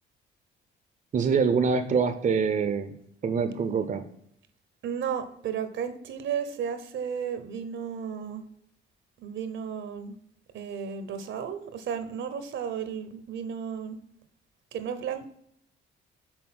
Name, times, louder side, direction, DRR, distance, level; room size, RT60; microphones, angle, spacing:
voice 1, 1.1-2.9 3.2-4.0, right 5 dB, 40° right, 9 dB, 0.7 m, -25 dB
voice 2, 4.8-8.4 9.2-10.1 10.5-14.0 14.7-15.3, right 7 dB, 70° right, 10 dB, 1.0 m, -33 dB
6.3 x 4.1 x 5.9 m, 0.72 s
cardioid pair, 90°, 20 cm